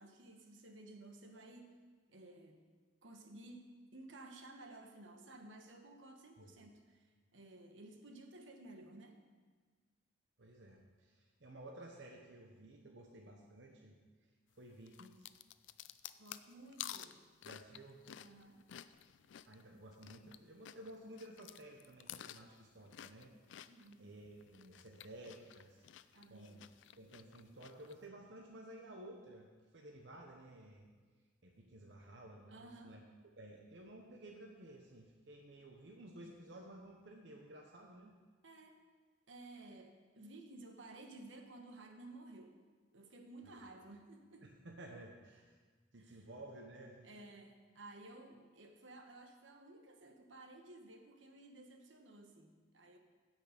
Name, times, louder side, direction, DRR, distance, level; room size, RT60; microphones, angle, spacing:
voice 1, 0.0-2.7 3.0-9.2 16.2-17.2 18.2-18.8 23.7-24.1 26.1-26.7 32.5-33.0 38.4-38.8 39.3-42.6 42.9-44.5 46.0-46.2 47.0-53.0, right 2 dB, 90° right, 4 dB, 1.2 m, -55 dB
voice 2, 10.4-13.9 14.5-15.3 17.4-18.0 19.5-23.7 24.0-25.9 26.3-26.7 27.0-30.9 31.4-33.0 33.4-38.2 43.4-43.5 44.4-45.6 45.9-47.1, right 1 dB, 70° right, 1 dB, 0.9 m, -54 dB
sound 1, 14.9-20.4 20.6-24.0 24.4-27.9, left 11 dB, 80° left, 0.4 m, -51 dB
16.0 x 5.6 x 5.1 m, 1.4 s
head